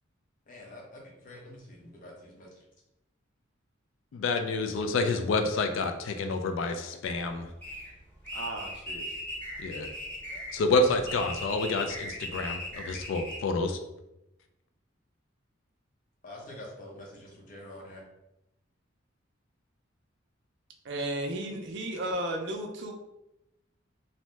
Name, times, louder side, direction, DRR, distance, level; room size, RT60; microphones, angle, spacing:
voice 1, 0.5-2.5 16.2-18.0, left 1 dB, 40° left, -1 dB, 0.6 m, -46 dB
voice 2, 4.1-7.5 9.6-9.9 10.5-13.8, left 3 dB, 70° left, 7 dB, 0.3 m, -28 dB
sound 1, 7.0-13.4, left 1 dB, 10° left, 0.7 m, -39 dB
voice 3, 8.3-9.1 20.8-22.9, right 1 dB, 60° right, 4 dB, 0.4 m, -34 dB
2.7 x 2.0 x 3.2 m, 0.90 s
head